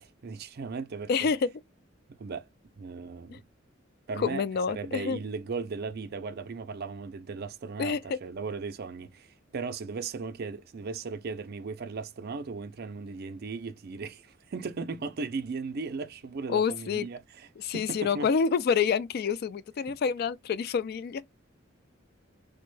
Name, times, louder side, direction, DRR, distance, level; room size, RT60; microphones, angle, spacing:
voice 1, 0.0-1.3 2.2-2.5 2.8-3.4 4.1-17.5 17.7-18.3, right 4 dB, 50° right, 0.4 m, -37 dB
voice 2, 1.1-1.5 3.3-3.4 4.2-5.2 7.8-8.2 16.5-17.1 17.6-21.2, left 6 dB, 50° left, 0.3 m, -28 dB
3.4 x 2.1 x 3.1 m
head